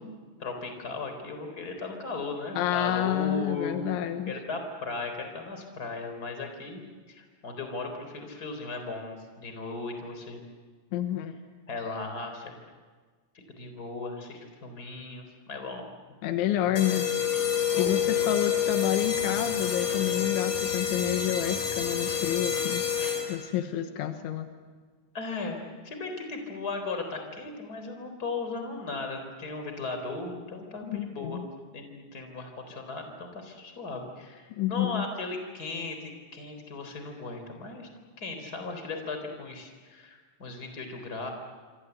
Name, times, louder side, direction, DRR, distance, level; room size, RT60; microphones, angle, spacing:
voice 1, 0.4-3.8 4.3-6.8 7.1-10.4 11.7-12.5 13.5-15.9 16.4-16.7 17.7-17.9 25.1-31.4 31.7-37.9 38.2-41.3, left 3 dB, 20° left, 5 dB, 3.7 m, -37 dB
voice 2, 2.6-4.3 10.9-11.4 16.2-17.1 17.7-22.8 23.3-24.5 30.8-31.5 34.5-35.1, left 12 dB, 90° left, 7 dB, 3.6 m, -29 dB
sound 1, 16.8-23.5, left 8 dB, 45° left, 4.7 m, -28 dB
26.5 x 26.0 x 8.1 m, 1.5 s
omnidirectional pair, 5.4 m